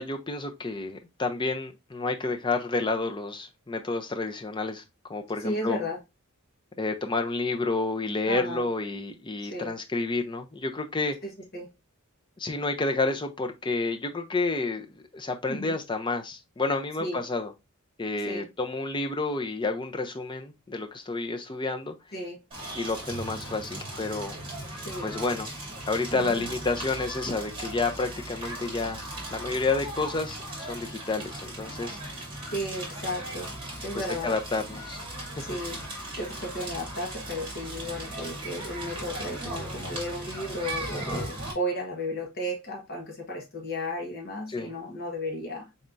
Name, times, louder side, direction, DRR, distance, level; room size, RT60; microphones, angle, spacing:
voice 1, 0.0-4.8 5.1-5.8 6.8-11.2 12.4-17.5 18.0-21.9 22.8-24.3 25.0-25.5 25.9-29.0 29.3-30.4 30.7-32.0 33.9-35.0 41.1-41.3 44.5-44.7, left 3 dB, 20° left, 0.5 m, -30 dB
voice 2, 5.4-6.0 8.3-8.7 9.4-9.8 11.2-11.7 15.5-15.7 17.0-17.2 18.3-18.5 22.1-22.4 24.8-25.2 26.1-26.5 32.0-32.1 32.5-33.6 33.8-34.4 35.4-35.8 36.2-45.7, equal, 45° left, 1.1 m, -34 dB
Crackle, 22.5-41.5, right 1 dB, 25° right, 1.8 m, -38 dB
4.2 x 3.4 x 2.6 m
head